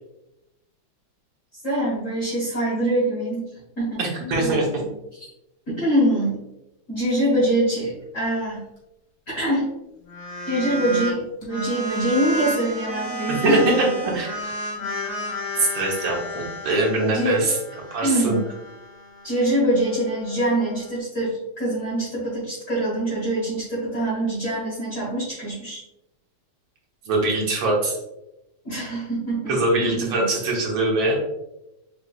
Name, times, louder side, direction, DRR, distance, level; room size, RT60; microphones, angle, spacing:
voice 1, 1.6-3.5 3.8-4.9 5.7-6.4 6.9-8.6 9.4-9.7 10.5-13.8 14.8-15.1 17.1-17.5 18.0-18.5 19.2-25.8 28.6-30.3, right 1 dB, 40° left, -8 dB, 1.6 m, -24 dB
voice 2, 4.0-4.7 13.3-14.5 15.6-17.6 17.9-18.4 27.1-28.0 29.5-31.2, right 2 dB, 70° right, -3 dB, 1.9 m, -22 dB
sound 1, 10.0-11.1 11.4-21.0, equal, 65° left, 2.1 m, -33 dB
5.2 x 3.2 x 2.4 m, 0.91 s
omnidirectional pair, 2.3 m